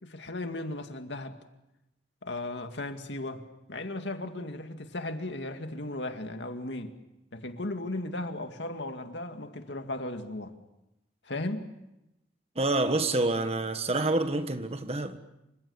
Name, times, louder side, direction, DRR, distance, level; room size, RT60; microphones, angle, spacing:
voice 1, 0.0-1.4 2.2-3.4 3.7-7.0 7.3-10.5 11.3-11.7, left 2 dB, 70° left, 2.3 m, -36 dB
voice 2, 12.5-15.2, right 2 dB, 35° right, 1.6 m, -27 dB
28.5 x 26.0 x 7.2 m
head